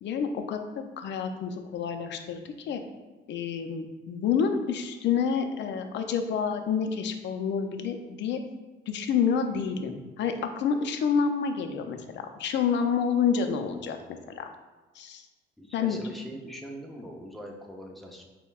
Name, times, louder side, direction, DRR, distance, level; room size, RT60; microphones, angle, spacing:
voice 1, 0.0-2.8 3.3-8.4 8.9-14.0 14.4-14.5 14.9-15.3 15.7-16.0, left 6 dB, 65° left, 6 dB, 0.4 m, -28 dB
voice 2, 15.6-18.2, equal, ahead, 0 dB, 0.6 m, -42 dB
5.3 x 2.2 x 2.3 m, 1.2 s
cardioid pair, 90°, 20 cm